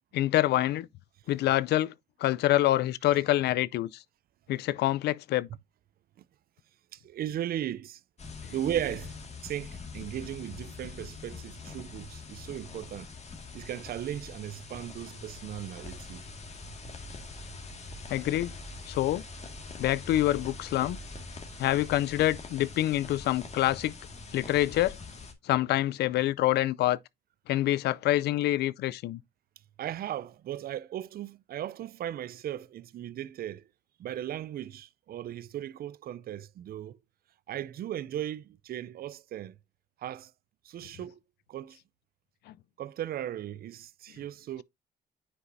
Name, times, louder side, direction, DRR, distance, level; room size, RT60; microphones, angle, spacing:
voice 1, 0.1-0.9 1.3-1.9 2.2-4.0 4.5-5.5 18.1-18.5 18.9-19.2 19.8-21.0 21.6-23.9 24.3-25.0 25.4-27.0 27.5-29.2 42.5-42.6, left 14 dB, 80° left, 0.4 m, -26 dB
voice 2, 6.9-8.0 8.5-9.1 9.4-13.1 13.5-16.2 29.8-33.7 34.0-37.0 37.5-39.6 40.0-40.3 40.6-41.2 41.5-41.8 42.8-44.6, right 11 dB, 65° right, 0.5 m, -37 dB
sound 1, 8.2-25.3, left 3 dB, 40° left, 1.9 m, -43 dB
9.6 x 5.6 x 2.6 m
cardioid pair, 75°, 17 cm